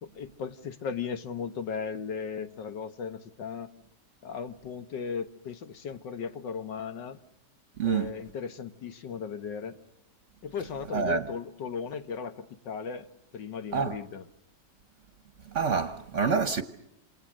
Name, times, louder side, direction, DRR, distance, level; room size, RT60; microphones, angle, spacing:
voice 1, 0.0-3.7 4.2-7.2 7.8-9.8 10.4-13.1 13.3-14.3, left 6 dB, 90° left, 2.0 m, -36 dB
voice 2, 7.8-8.1 10.9-11.3 13.7-14.0 15.5-16.6, right 5 dB, 45° right, 1.3 m, -27 dB
28.5 x 27.0 x 6.4 m
omnidirectional pair, 1.9 m